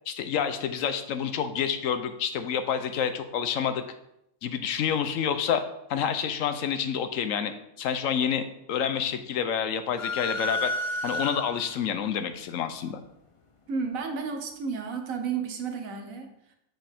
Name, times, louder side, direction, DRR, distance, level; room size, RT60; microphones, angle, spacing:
voice 1, 0.1-3.8 4.4-5.6 5.9-10.7 11.0-13.0, left 8 dB, 75° left, 9 dB, 1.0 m, -28 dB
sound 1, 10.0-11.8, left 2 dB, 40° left, 0.5 m, -31 dB
voice 2, 13.7-16.6, right 5 dB, 75° right, 5 dB, 1.4 m, -32 dB
7.2 x 6.1 x 3.5 m, 0.79 s
omnidirectional pair, 1.4 m